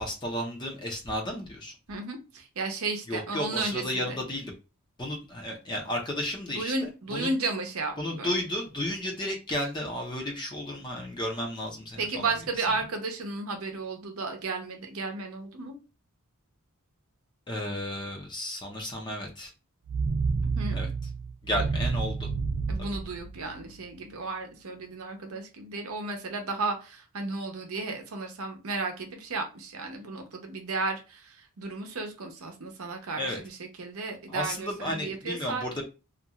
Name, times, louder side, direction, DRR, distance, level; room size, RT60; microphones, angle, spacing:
voice 1, 0.0-1.7 3.1-4.6 5.0-7.3 8.0-12.3 17.5-19.5 20.7-20.9 21.4-22.3 22.8-23.0 33.2-33.4 34.3-35.8, left 1 dB, 20° left, 0 dB, 0.5 m, -33 dB
voice 2, 1.9-4.2 6.6-8.3 12.0-15.7 20.4-20.9 22.7-35.7, right 3 dB, 70° right, 4 dB, 0.7 m, -34 dB
sound 1, 19.9-23.9, right 4 dB, 50° right, 0.3 m, -30 dB
2.5 x 2.3 x 2.8 m, 0.31 s
head